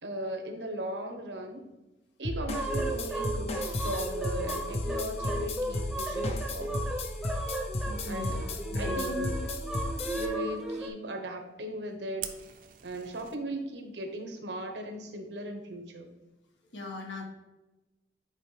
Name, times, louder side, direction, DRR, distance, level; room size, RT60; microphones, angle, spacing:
voice 1, 0.0-1.7 2.2-6.9 8.1-8.4 8.7-9.5 10.2-12.3 12.8-16.1, right 1 dB, 80° right, 4 dB, 1.1 m, -37 dB
sound 1, 2.2-10.3, left 2 dB, 35° left, 0.6 m, -34 dB
sound 2, 2.5-10.9, right 1 dB, 5° right, 0.7 m, -35 dB
voice 2, 7.8-8.4 8.7-9.2 16.7-17.2, left 2 dB, 85° left, 0 dB, 1.6 m, -40 dB
Fire, 12.2-13.3, right 9 dB, 50° right, 0.6 m, -42 dB
9.8 x 4.6 x 3.3 m, 1.0 s
head